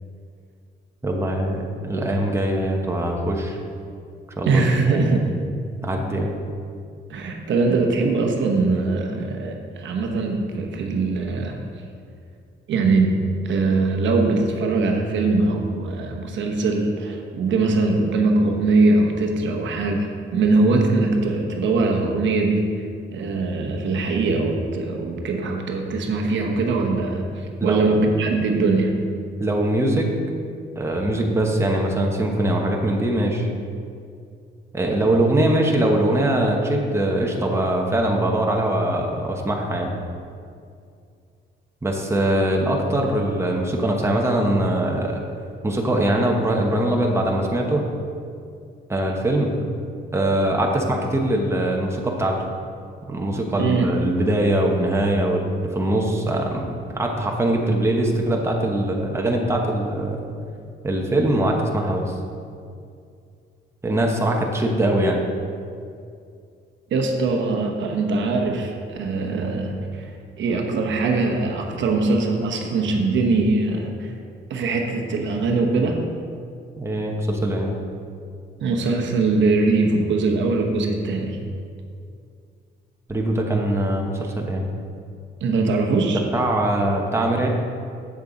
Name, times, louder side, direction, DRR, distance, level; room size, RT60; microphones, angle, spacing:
voice 1, 1.0-3.6 4.4-5.3 5.8-6.3 27.6-28.0 29.4-30.1 30.8-33.5 34.7-39.9 41.8-45.2 45.6-47.8 48.9-49.5 50.1-52.4 53.1-60.3 60.8-62.1 63.8-65.2 76.8-77.7 83.1-84.7 86.3-87.5, right 1 dB, 15° right, 0 dB, 1.1 m, -22 dB
voice 2, 4.5-5.3 7.1-11.6 12.7-22.7 23.1-29.0 53.6-53.9 66.9-70.1 70.4-74.1 74.5-76.0 78.6-81.4 85.4-86.2, right 3 dB, 70° right, 2 dB, 1.0 m, -21 dB
7.8 x 6.7 x 4.0 m, 2.4 s
cardioid pair, 90°, 20 cm